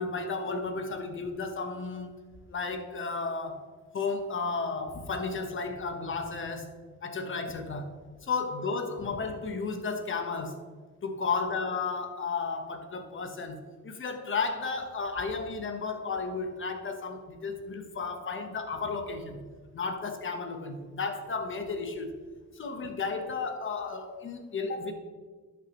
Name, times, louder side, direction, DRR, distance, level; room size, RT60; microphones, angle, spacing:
voice 1, 0.0-2.2 2.5-3.7 3.9-6.7 7.0-7.9 8.2-10.6 11.0-19.4 19.7-22.1 22.6-24.9, left 4 dB, 40° left, 7 dB, 1.2 m, -33 dB
11.5 x 6.9 x 3.1 m, 1.5 s
cardioid pair, 90°, 30 cm